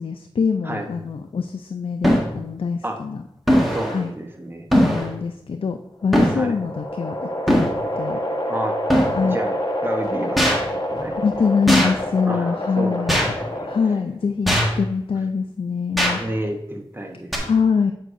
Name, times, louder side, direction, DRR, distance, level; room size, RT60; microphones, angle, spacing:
voice 1, 0.0-3.2 3.9-4.1 4.7-7.2 7.5-7.7 8.0-8.2 9.1-9.4 11.2-13.2 13.6-16.2 17.4-17.9, left 5 dB, 70° left, 6 dB, 0.4 m, -24 dB
sound 1, 0.8-0.9 2.0-2.3 3.5-4.0 4.7-5.1 6.1-6.4 7.5-7.7 8.9-9.2 10.4-10.6 11.7-11.9 13.1-13.3 14.5-14.8 16.0-16.1 17.3-17.4, equal, ahead, 1.5 m, -18 dB
voice 2, 3.7-4.7 6.3-6.6 8.5-8.8 9.2-9.6 9.8-11.4 12.3-13.7 16.2-17.5, right 1 dB, 20° right, 2 dB, 0.9 m, -30 dB
sound 2, 5.9-14.1, equal, 40° left, 1.3 m, -27 dB
7.5 x 6.4 x 2.6 m, 0.80 s
wide cardioid pair, 65°, 10 cm